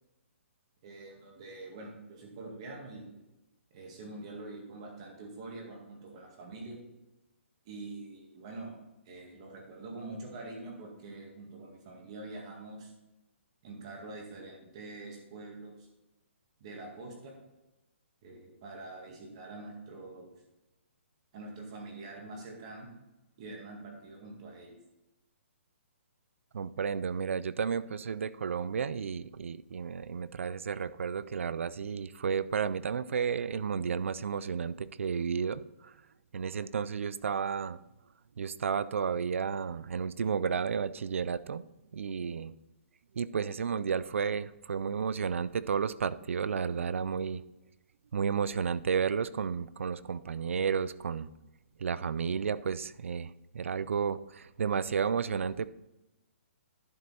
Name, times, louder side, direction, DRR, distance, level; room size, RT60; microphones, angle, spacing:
voice 1, 0.8-3.1 3.7-6.8 7.7-8.8 9.1-12.9 13.6-15.9 16.6-17.3 18.2-20.3 21.3-22.9 23.4-24.7, right 2 dB, 25° right, 0 dB, 1.9 m, -45 dB
voice 2, 26.5-36.0 36.3-37.8 38.4-41.6 41.9-42.5 43.1-47.4 48.1-51.3 51.8-55.7, right 6 dB, 70° right, 17 dB, 0.4 m, -32 dB
11.0 x 5.4 x 4.2 m, 0.97 s
hypercardioid pair, 175°, 7 cm